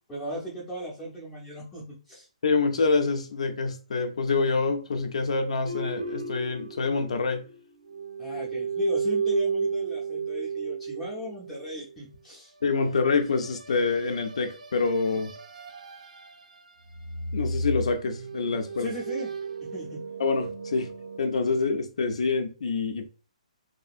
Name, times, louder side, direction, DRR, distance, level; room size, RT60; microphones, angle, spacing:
voice 1, 0.1-2.3 8.2-12.5 18.8-19.3 19.7-20.0, left 2 dB, 5° left, 0.5 m, -36 dB
voice 2, 2.4-7.4 12.6-15.3 17.3-18.9 20.2-20.9 21.2-23.1, left 4 dB, 55° left, 0.4 m, -26 dB
sound 1, 5.7-7.6 7.9-11.7 13.3-16.6 16.9-21.2, right 5 dB, 80° right, 0.5 m, -33 dB
2.6 x 2.6 x 2.4 m
hypercardioid pair, 175°, 4 cm